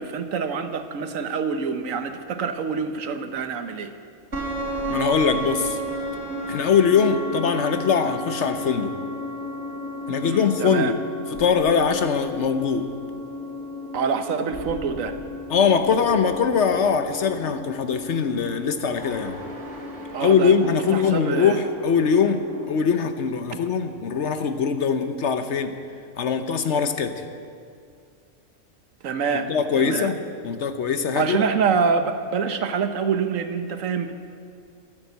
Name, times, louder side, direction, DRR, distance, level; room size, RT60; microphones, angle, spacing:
voice 1, 0.0-3.9 10.2-11.0 13.9-15.2 20.1-21.6 29.0-30.1 31.2-34.1, right 5 dB, 70° right, 8 dB, 1.2 m, -26 dB
sound 1, 4.3-22.7, left 1 dB, 45° right, 4.1 m, -33 dB
voice 2, 4.9-5.8 6.5-8.9 10.1-11.0 11.4-12.9 15.5-19.4 20.2-25.7 26.2-27.2 29.3-30.2 30.4-31.4, left 6 dB, 60° left, 9 dB, 1.0 m, -22 dB
12.0 x 11.0 x 8.0 m, 2.3 s
omnidirectional pair, 1.4 m